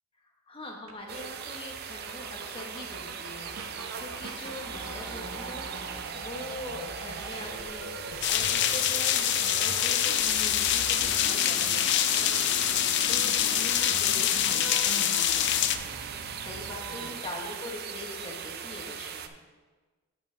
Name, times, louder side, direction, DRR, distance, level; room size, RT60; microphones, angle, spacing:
voice 1, 0.2-5.7 6.1-7.9 8.3-15.6 16.4-19.3, left 1 dB, 25° left, 0 dB, 1.3 m, -43 dB
sound 1, 0.9-1.0 1.2-1.3 1.5-1.6 1.9-17.1, right 2 dB, 75° right, 0.9 m, -42 dB
sound 2, 1.1-19.3, right 7 dB, 45° right, 0.5 m, -39 dB
sound 3, 8.2-15.8, left 11 dB, 55° left, 0.4 m, -25 dB
8.8 x 8.1 x 3.4 m, 1.3 s
head